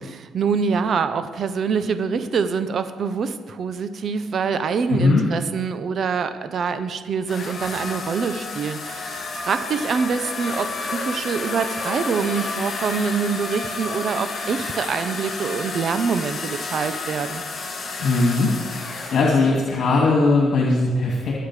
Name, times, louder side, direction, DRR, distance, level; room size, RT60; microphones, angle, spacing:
voice 1, 0.0-17.4, right 5 dB, 55° right, 10 dB, 0.9 m, -25 dB
voice 2, 4.9-5.2 18.0-18.5 19.1-21.3, left 3 dB, 60° left, -2 dB, 2.6 m, -19 dB
sound 1, 7.3-19.3, left 3 dB, 45° left, 5.6 m, -31 dB
22.0 x 8.1 x 5.0 m, 1.3 s
cardioid pair, 90°, 0 cm